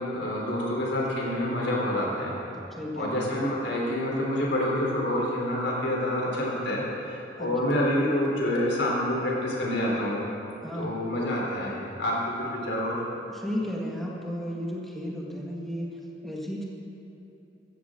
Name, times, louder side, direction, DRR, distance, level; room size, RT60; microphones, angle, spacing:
voice 1, 0.0-2.3 3.0-6.8 7.1-10.2 10.8-13.0, left 1 dB, 80° left, -4 dB, 3.6 m, -27 dB
voice 2, 2.7-3.2 7.4-7.7 10.6-11.0 13.3-16.6, equal, ahead, -4 dB, 1.6 m, -34 dB
15.0 x 14.0 x 3.8 m, 2.9 s
head